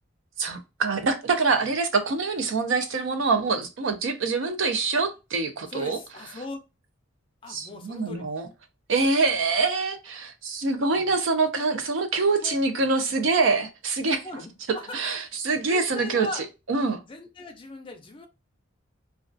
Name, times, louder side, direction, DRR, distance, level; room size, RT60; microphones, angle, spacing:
voice 1, 0.4-6.0 7.5-8.5 8.9-14.2 14.7-17.0, right 4 dB, 65° right, 0.4 m, -25 dB
voice 2, 5.7-6.6 7.4-8.3 10.9-11.1 12.4-12.6 13.1-13.3 14.2-15.2 15.5-16.4 17.1-18.3, left 2 dB, 25° left, 0.4 m, -39 dB
2.3 x 2.2 x 2.5 m
head